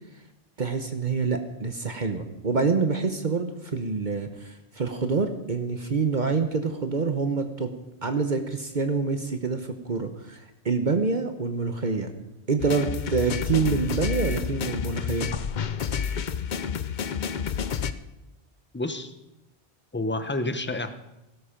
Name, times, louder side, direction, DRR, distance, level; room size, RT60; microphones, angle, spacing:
voice 1, 0.6-7.7 8.0-12.1 12.5-15.3, right 4 dB, 50° right, 7 dB, 1.1 m, -26 dB
sound 1, 12.6-17.9, left 7 dB, 50° left, 0.7 m, -29 dB
voice 2, 18.7-19.1 19.9-21.1, left 2 dB, 10° left, 9 dB, 0.8 m, -29 dB
16.5 x 13.0 x 5.1 m, 0.94 s
omnidirectional pair, 1.1 m